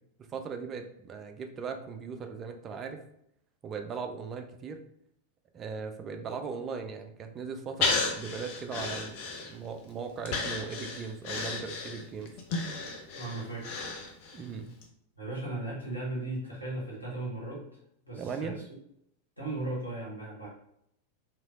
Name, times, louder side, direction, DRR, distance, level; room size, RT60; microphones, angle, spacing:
voice 1, 0.2-3.0 3.6-4.8 5.5-12.3 14.3-14.7 18.2-18.6, right 5 dB, 25° right, 6 dB, 0.3 m, -38 dB
Breathing, 7.8-9.8 10.3-14.4 14.8-14.9, left 4 dB, 45° left, 0.6 m, -33 dB
voice 2, 13.1-13.8 15.2-17.6 18.0-18.6 19.4-20.5, right 2 dB, 85° left, -6 dB, 1.3 m, -36 dB
3.1 x 2.9 x 2.5 m, 0.75 s
figure-of-eight pair, 90°, 0 cm